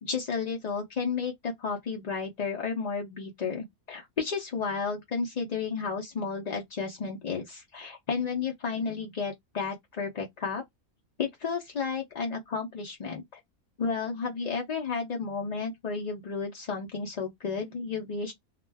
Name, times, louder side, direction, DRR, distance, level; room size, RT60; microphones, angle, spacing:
voice 1, 0.0-10.6 11.2-13.4 13.8-18.3, left 5 dB, 60° left, 0.4 m, -32 dB
2.4 x 2.2 x 3.2 m
omnidirectional pair, 1.5 m